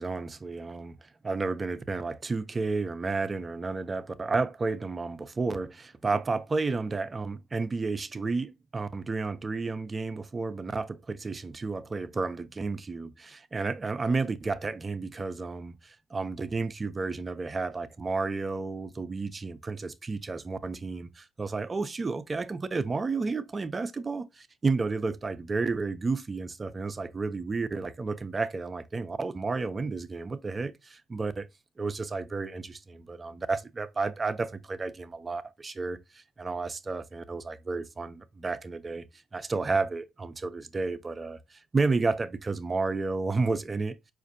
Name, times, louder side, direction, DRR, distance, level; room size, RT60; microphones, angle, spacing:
voice 1, 0.0-31.5 31.8-39.0 39.3-44.0, right 3 dB, 30° right, 0.4 m, -31 dB
4.4 x 2.5 x 2.5 m
cardioid pair, 85°, 0 cm